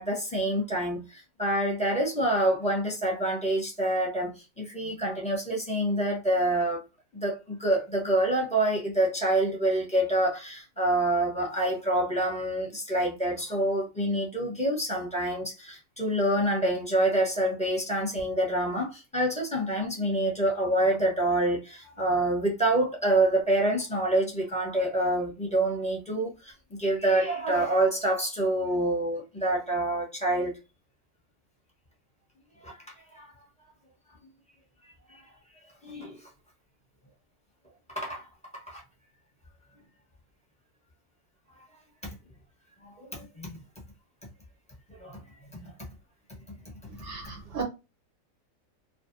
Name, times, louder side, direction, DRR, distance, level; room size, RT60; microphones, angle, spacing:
voice 1, 0.0-6.8 7.1-26.5 26.8-30.5 32.6-32.8 33.1-33.3 35.8-36.2 37.9-38.2 38.5-38.8 42.8-43.6 45.0-45.2 45.5-45.7, right 1 dB, 5° left, 0.8 m, -27 dB
voice 2, 47.0-47.6, right 4 dB, 60° right, 0.8 m, -35 dB
2.5 x 2.4 x 2.6 m
omnidirectional pair, 1.6 m